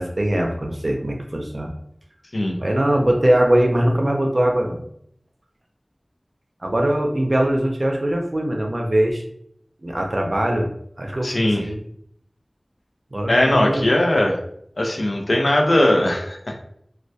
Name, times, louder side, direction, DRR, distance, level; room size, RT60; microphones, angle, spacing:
voice 1, 0.0-1.7 2.6-4.8 6.6-9.2 9.8-11.8 13.1-13.9, right 1 dB, 65° right, 1 dB, 0.4 m, -21 dB
voice 2, 11.2-11.6 13.3-14.4 14.8-16.4, left 1 dB, 85° left, 1 dB, 0.4 m, -19 dB
2.2 x 2.1 x 2.6 m, 0.70 s
wide cardioid pair, 45°, 0 cm